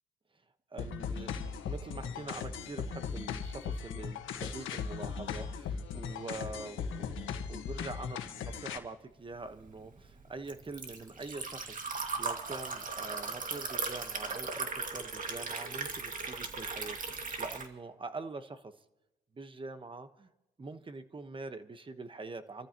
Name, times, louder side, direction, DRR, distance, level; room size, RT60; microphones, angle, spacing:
voice 1, 0.7-18.8 19.3-20.3 20.6-22.7, right 3 dB, 25° right, 10 dB, 1.2 m, -44 dB
sound 1, 0.8-8.8, left 6 dB, 80° left, 1.6 m, -38 dB
Liquid, 9.4-17.7, right 4 dB, 40° right, 2.2 m, -38 dB
28.0 x 14.0 x 3.0 m, 0.96 s
cardioid pair, 90°, 20 cm